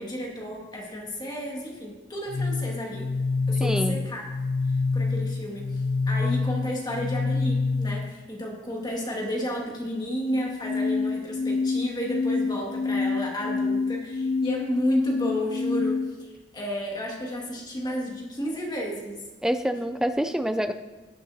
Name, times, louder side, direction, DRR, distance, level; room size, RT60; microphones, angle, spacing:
voice 1, 0.0-3.1 3.5-4.2 4.7-19.3, equal, 25° left, -1 dB, 2.0 m, -32 dB
sound 1, 2.3-8.2 10.3-16.3, left 4 dB, 60° left, 0.3 m, -27 dB
voice 2, 3.6-4.0 19.4-20.7, equal, 5° right, 9 dB, 0.4 m, -26 dB
18.0 x 6.6 x 2.8 m, 1.2 s
head